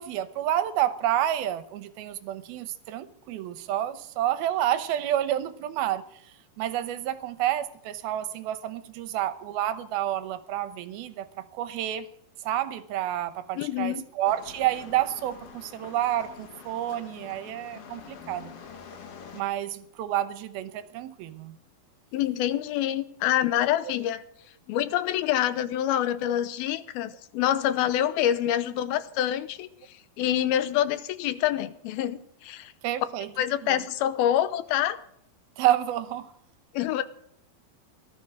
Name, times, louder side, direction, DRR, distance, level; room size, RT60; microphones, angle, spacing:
voice 1, 0.0-6.0 6.6-12.1 12.4-18.5 19.3-21.5 32.8-33.3 33.7-33.8 35.6-36.3, right 12 dB, 80° right, 12 dB, 2.7 m, -29 dB
voice 2, 13.6-14.0 22.1-24.2 24.7-29.7 30.2-32.7 33.4-35.0 36.7-37.0, left 11 dB, 80° left, 13 dB, 2.6 m, -26 dB
sound 1, 14.2-19.4, left 6 dB, 55° left, 1.8 m, -46 dB
18.0 x 12.5 x 4.9 m, 0.69 s
omnidirectional pair, 4.5 m